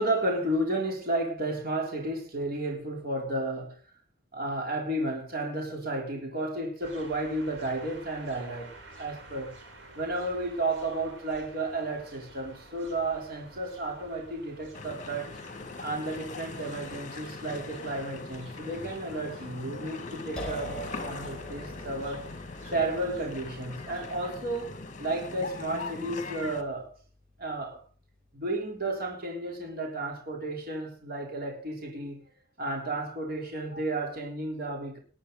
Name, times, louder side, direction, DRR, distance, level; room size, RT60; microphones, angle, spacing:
voice 1, 0.0-3.8 4.3-9.5 10.0-15.4 15.8-22.3 22.7-26.9 27.4-27.8 28.3-32.2 32.6-35.0, right 2 dB, 55° right, 3.7 m, -32 dB
sound 1, 6.8-24.2, right 2 dB, 75° right, 4.9 m, -51 dB
sound 2, 14.7-26.6, left 3 dB, 40° left, 2.1 m, -41 dB
sound 3, 20.4-27.9, left 1 dB, 5° left, 4.6 m, -45 dB
19.5 x 11.0 x 4.0 m
head